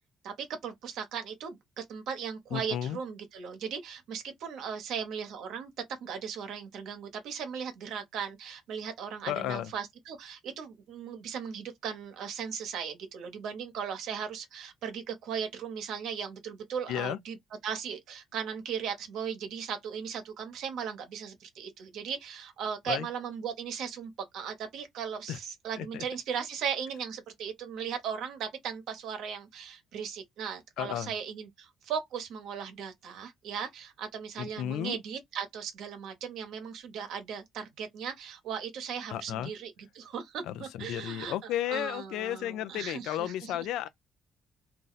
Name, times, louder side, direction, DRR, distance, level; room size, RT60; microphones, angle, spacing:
voice 1, 0.2-5.7 6.0-17.4 17.6-43.7, right 7 dB, 80° right, 1.0 m, -37 dB
voice 2, 2.5-3.0 9.3-9.7 16.9-17.2 22.9-23.1 25.3-25.4 25.8-26.0 30.8-31.1 34.4-35.0 39.1-39.5 40.4-43.9, left 12 dB, 85° left, 0.3 m, -33 dB
2.6 x 2.0 x 3.9 m
cardioid pair, 80°, 0 cm